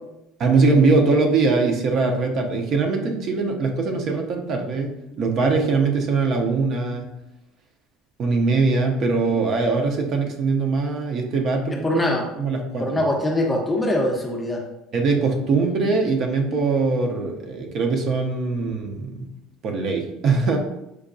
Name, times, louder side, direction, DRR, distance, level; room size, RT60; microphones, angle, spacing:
voice 1, 0.4-7.1 8.2-12.0 12.4-13.0 14.9-19.3 19.6-20.6, right 4 dB, 45° right, 3 dB, 0.5 m, -22 dB
voice 2, 11.8-12.3 12.8-14.6, left 1 dB, 15° left, 2 dB, 0.5 m, -22 dB
4.6 x 2.2 x 2.5 m, 0.90 s
cardioid pair, 130°, 0 cm